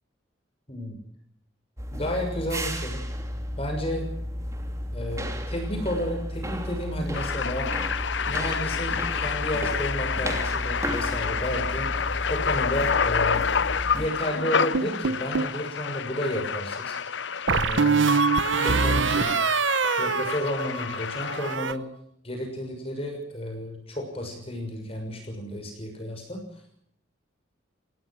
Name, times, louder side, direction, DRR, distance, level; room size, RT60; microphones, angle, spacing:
voice 1, 0.7-1.0 1.9-3.0 3.6-4.1 4.9-7.7 8.3-12.0 12.3-13.5 13.9-17.0 17.5-18.2 18.5-19.3 20.0-21.9 22.2-26.4, equal, 30° left, 3 dB, 6.5 m, -32 dB
sound 1, 1.8-14.1, equal, 15° right, 2.9 m, -33 dB
sound 2, 7.1-21.6, left 6 dB, 65° left, 0.8 m, -29 dB
sound 3, 14.7-15.6 17.5-21.0 21.3-21.7, right 5 dB, 70° right, 0.9 m, -24 dB
27.0 x 18.0 x 6.3 m, 0.71 s
head